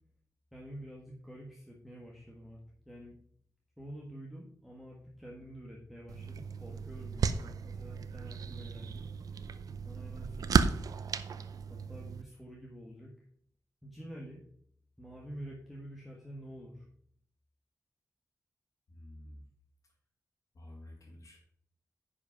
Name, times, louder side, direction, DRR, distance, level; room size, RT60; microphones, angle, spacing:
voice 1, 0.5-2.6 2.9-3.1 3.8-9.1 9.8-10.8 11.7-13.1 13.8-14.4 15.0-16.9, equal, ahead, -3 dB, 1.4 m, -48 dB
sound 1, 6.1-12.2, right 6 dB, 85° right, 0.6 m, -34 dB
voice 2, 18.9-19.4 20.5-21.4, left 1 dB, 60° left, -5 dB, 2.3 m, -50 dB
10.5 x 5.1 x 5.7 m, 0.64 s
wide cardioid pair, 175°, 6 cm